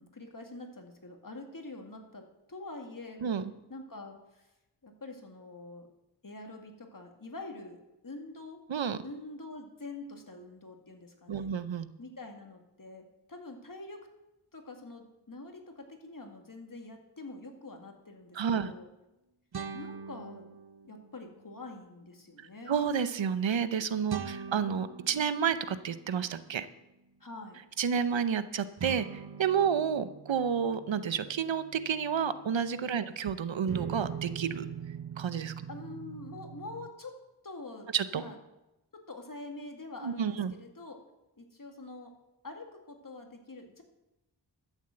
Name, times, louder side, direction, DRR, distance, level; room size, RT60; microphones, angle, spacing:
voice 1, 0.0-2.2 2.5-3.2 3.7-4.5 4.8-5.9 6.2-8.6 9.0-11.5 12.0-14.1 14.5-18.9 19.7-20.5 20.8-22.8 27.2-27.6 32.9-33.1 35.7-37.1 37.4-37.9 38.2-38.4 38.9-41.0 41.4-42.1 42.4-43.8, left 2 dB, 45° left, 3 dB, 2.3 m, -45 dB
voice 2, 8.7-9.0 11.3-11.9 18.4-18.7 22.4-26.7 27.8-34.7 35.2-35.5 37.9-38.2 40.0-40.5, right 7 dB, 85° right, 13 dB, 0.8 m, -30 dB
sound 1, 17.6-17.7 19.5-21.2 24.1-26.5 28.8-33.1 33.7-36.9, right 7 dB, 60° right, 0.9 m, -42 dB
13.0 x 7.3 x 7.7 m, 0.96 s
cardioid pair, 45°, 44 cm